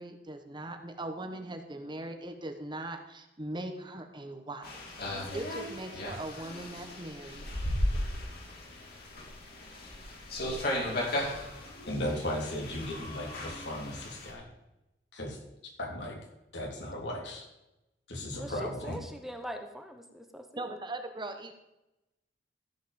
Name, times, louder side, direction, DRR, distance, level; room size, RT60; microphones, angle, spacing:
voice 1, 0.0-4.8 5.3-7.4 20.6-21.5, right 1 dB, 25° right, 6 dB, 1.2 m, -40 dB
sound 1, 4.6-14.3, left 1 dB, 60° left, 3.7 m, -36 dB
voice 2, 11.8-14.5 15.1-15.4 15.8-16.2 16.5-17.5 18.1-19.0, left 1 dB, 85° left, 0 dB, 3.5 m, -36 dB
voice 3, 18.3-20.4, equal, ahead, 5 dB, 1.0 m, -42 dB
14.5 x 5.7 x 7.1 m, 0.93 s
head